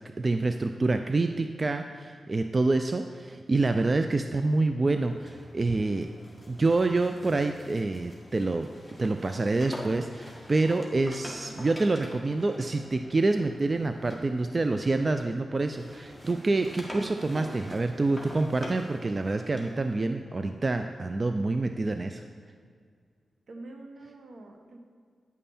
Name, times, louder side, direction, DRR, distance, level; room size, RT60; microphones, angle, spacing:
voice 1, 0.2-6.1 6.5-8.7 9.0-22.2, right 3 dB, 35° right, 7 dB, 0.4 m, -27 dB
sound 1, 4.8-15.4 15.7-20.1, equal, 5° left, 1.7 m, -46 dB
voice 2, 23.5-24.8, right 2 dB, 75° right, 3 dB, 1.0 m, -46 dB
9.4 x 5.5 x 4.3 m, 2.1 s
cardioid pair, 65°, 0 cm